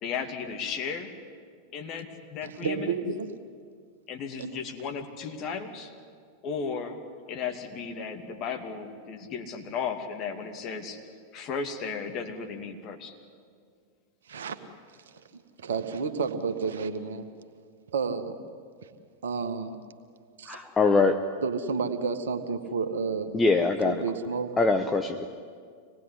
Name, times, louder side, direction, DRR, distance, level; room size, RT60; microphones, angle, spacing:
voice 1, 0.0-1.1 1.7-3.0 4.1-5.9 6.4-7.0 7.3-11.0 11.3-13.2, left 6 dB, 35° left, 4 dB, 2.6 m, -35 dB
voice 2, 2.4-3.3 4.4-4.5 14.3-14.6 15.1-15.2 15.6-17.3 17.9-18.4 18.8-18.9 19.2-19.8 20.4-20.6 21.4-23.4 23.9-24.5, right 5 dB, 65° right, 8 dB, 1.6 m, -31 dB
voice 3, 20.5-21.2 23.3-24.0 24.6-25.3, left 3 dB, 15° left, 6 dB, 1.0 m, -23 dB
26.0 x 19.5 x 10.0 m, 2.1 s
figure-of-eight pair, 90°, 0 cm